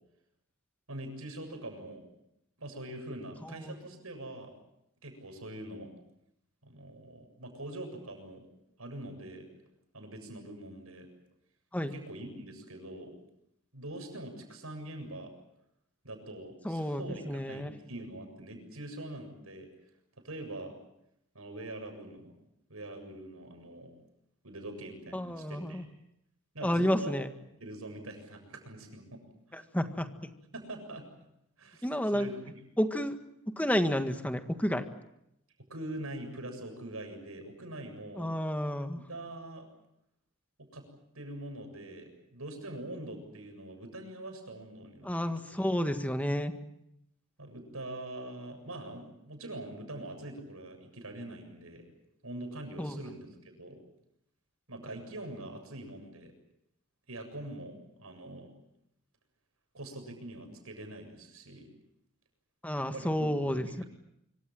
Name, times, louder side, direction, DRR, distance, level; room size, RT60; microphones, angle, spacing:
voice 1, 0.9-2.1 2.6-4.5 5.0-5.9 6.6-8.5 8.8-9.5 9.9-11.1 11.9-13.2 13.7-15.3 16.0-19.7 20.2-20.7 21.3-22.3 22.7-23.9 24.4-25.9 26.5-27.1 27.6-29.2 29.5-29.6 30.5-31.1 31.6-32.4 35.7-38.4 39.1-39.7 40.6-40.8 41.1-45.6 47.4-51.8 52.2-53.8 54.7-56.3 57.1-58.5 59.7-61.7 62.8-63.8, right 1 dB, 90° right, 5 dB, 7.4 m, -43 dB
voice 2, 3.5-3.8 11.7-11.9 16.6-17.7 25.1-25.8 26.6-27.3 29.5-30.1 31.8-32.3 32.8-33.2 33.5-34.9 38.2-39.0 45.0-46.5 52.8-53.0 62.6-63.8, equal, 5° left, 7 dB, 1.7 m, -31 dB
25.5 x 24.5 x 7.7 m, 0.80 s
head